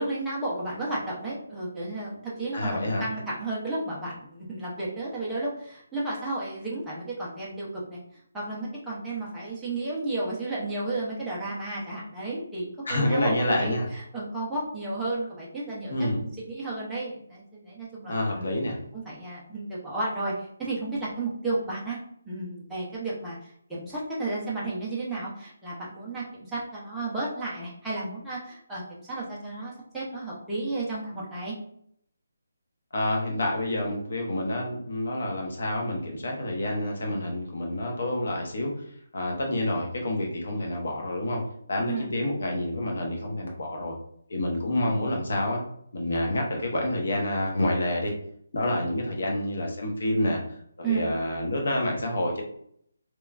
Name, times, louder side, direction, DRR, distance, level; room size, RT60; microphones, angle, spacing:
voice 1, 0.0-8.0 8.3-15.9 16.4-18.4 18.9-22.0 22.3-31.5 41.8-42.1 50.8-51.0, right 2 dB, 5° right, -9 dB, 0.4 m, -33 dB
voice 2, 2.5-3.1 12.9-13.9 15.9-16.2 18.1-18.8 32.9-38.7 39.1-41.4 41.7-43.9 44.3-45.6 45.9-48.1 48.5-50.4 50.8-52.4, left 1 dB, 50° left, 1 dB, 0.7 m, -28 dB
3.0 x 2.2 x 2.3 m, 0.69 s
hypercardioid pair, 180°, 0 cm